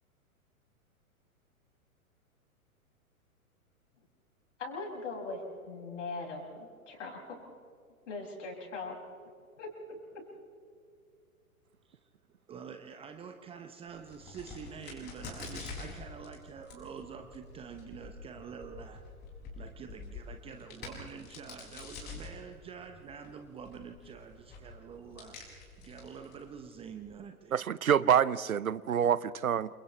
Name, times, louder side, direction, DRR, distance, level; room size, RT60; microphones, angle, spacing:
voice 1, 4.6-7.4 8.1-9.0 9.6-10.3, left 3 dB, 55° left, 6.9 m, -40 dB
voice 2, 12.5-19.0 19.6-27.7, right 6 dB, 15° right, 0.9 m, -47 dB
Crack, 13.9-27.1, left 4 dB, 20° left, 6.9 m, -48 dB
voice 3, 27.5-29.7, right 8 dB, 70° right, 0.8 m, -27 dB
29.0 x 27.5 x 3.4 m
figure-of-eight pair, 110°, 43 cm